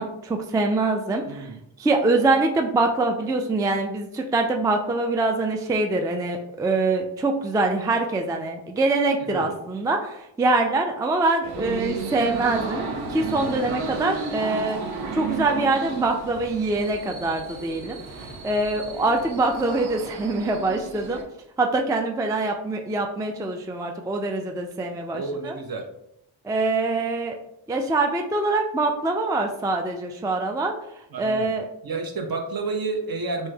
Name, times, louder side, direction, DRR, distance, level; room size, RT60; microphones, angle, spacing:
voice 1, 0.0-1.5 1.8-14.8 15.1-18.0 18.4-21.2 21.6-25.5 26.4-27.4 27.7-30.7 31.2-31.7, right 2 dB, 10° right, 4 dB, 0.3 m, -24 dB
voice 2, 1.3-1.6 9.3-9.5 25.1-25.9 31.1-31.5 31.8-33.5, right 3 dB, 50° right, 2 dB, 0.7 m, -30 dB
sound 1, 11.4-21.2, right 4 dB, 85° right, 0.6 m, -33 dB
3.1 x 2.1 x 3.3 m, 0.78 s
cardioid pair, 40°, 46 cm